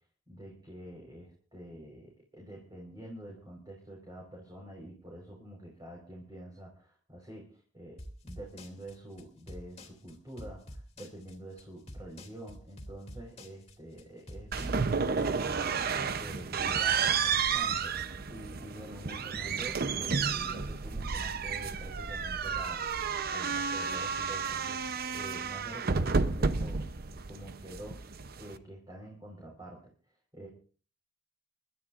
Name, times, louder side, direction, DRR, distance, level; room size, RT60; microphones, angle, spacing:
voice 1, 0.3-7.5 7.7-22.8 23.3-26.8 27.3-28.0 28.4-29.9 30.3-30.5, right 1 dB, 20° right, -2 dB, 4.5 m, -47 dB
sound 1, 8.0-17.6, left 1 dB, 35° left, 2.8 m, -47 dB
sound 2, 14.5-28.6, right 5 dB, 55° right, 0.7 m, -31 dB
30.0 x 13.0 x 2.5 m, 0.39 s
head